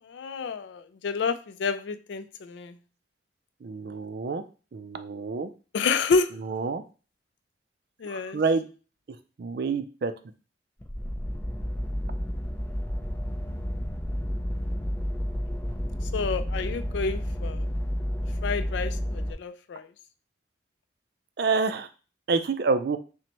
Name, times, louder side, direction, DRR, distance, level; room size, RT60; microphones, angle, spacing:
voice 1, 0.1-1.3 1.6-2.7 5.7-6.3 8.0-8.4 16.1-17.6 18.4-19.8, left 4 dB, 85° left, 10 dB, 0.4 m, -29 dB
voice 2, 3.6-4.4 4.7-5.5 6.4-6.8 8.0-8.6 9.4-10.1 21.4-21.9 22.3-23.0, right 4 dB, 60° right, 10 dB, 0.4 m, -27 dB
sound 1, 10.8-19.3, equal, 10° left, 0.4 m, -31 dB
5.9 x 2.1 x 3.0 m, 0.35 s
head